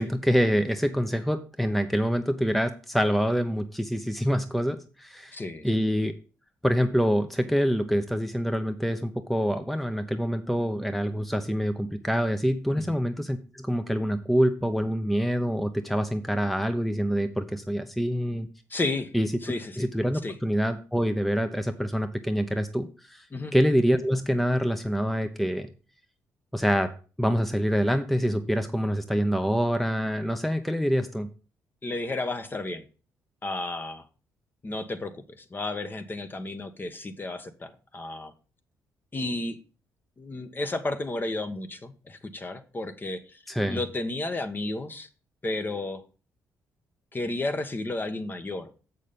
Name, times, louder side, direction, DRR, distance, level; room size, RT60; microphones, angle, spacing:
voice 1, 0.0-5.4 5.6-6.1 6.6-18.5 19.1-19.3 19.8-23.3 23.5-25.7 26.5-26.9 27.2-31.3 43.5-43.8, equal, ahead, 0.9 m, -26 dB
voice 2, 5.3-5.7 12.8-13.0 18.7-19.1 19.4-19.9 20.2-20.3 23.3-23.5 31.8-32.8 33.4-34.0 34.6-38.3 39.1-39.6 40.2-43.4 43.7-45.1 45.4-46.0 47.1-48.7, left 2 dB, 30° left, 1.2 m, -32 dB
7.5 x 6.4 x 5.2 m
supercardioid pair, 65°, 7 cm